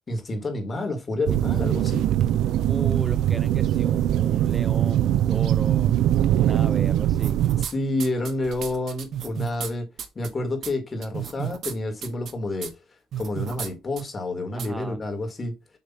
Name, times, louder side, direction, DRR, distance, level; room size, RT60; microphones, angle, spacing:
voice 1, 0.1-2.0 7.6-9.9 10.2-12.7 13.2-15.6, left 2 dB, 30° left, 2.0 m, -29 dB
sound 1, 1.3-7.7, right 12 dB, 90° right, 0.4 m, -22 dB
voice 2, 2.7-5.9 6.3-7.4 14.5-15.0, right 2 dB, 15° right, 0.4 m, -36 dB
sound 2, 7.1-7.7 8.0-9.7 10.0-10.3 10.6-10.7 11.0-11.7 12.0-12.3 12.6-12.7 13.1-13.7 14.0-14.1 14.6-14.7, right 9 dB, 70° right, 1.1 m, -32 dB
6.7 x 2.8 x 5.5 m
cardioid pair, 105°, 0 cm